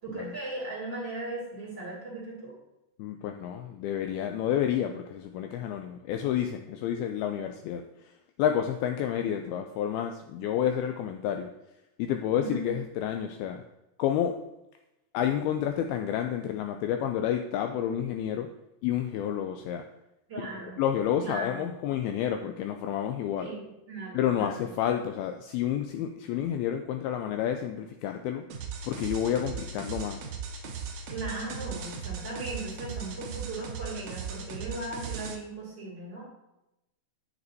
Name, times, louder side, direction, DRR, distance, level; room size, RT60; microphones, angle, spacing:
voice 1, 0.0-2.5 12.3-12.7 20.3-20.8 21.2-21.6 23.4-24.7 31.1-36.2, right 2 dB, 35° right, -7 dB, 2.4 m, -37 dB
voice 2, 3.0-7.8 8.4-11.5 12.0-13.6 14.0-14.4 15.1-18.5 18.8-19.8 20.4-20.5 20.8-23.5 24.1-28.5 28.8-30.3, left 10 dB, 85° left, 5 dB, 2.2 m, -30 dB
sound 1, 28.5-35.4, right 6 dB, 80° right, 1.6 m, -38 dB
9.2 x 7.9 x 2.7 m, 0.91 s
omnidirectional pair, 4.7 m